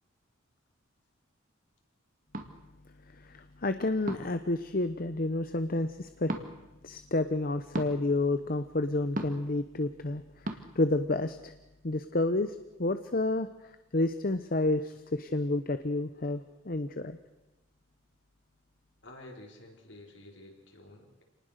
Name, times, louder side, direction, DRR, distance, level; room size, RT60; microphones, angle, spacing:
sound 1, 2.3-2.5 4.1-4.4 6.2-6.5 7.7-7.9 9.1-9.5 10.4-10.6, right 1 dB, 40° right, 2.0 m, -34 dB
voice 1, 3.2-6.3 6.8-10.2 10.8-11.5 11.8-13.5 13.9-16.4 16.7-17.2, left 2 dB, 45° left, 10 dB, 0.8 m, -30 dB
voice 2, 19.0-21.2, left 1 dB, 65° left, 2 dB, 4.3 m, -50 dB
27.5 x 19.5 x 6.6 m, 1.0 s
head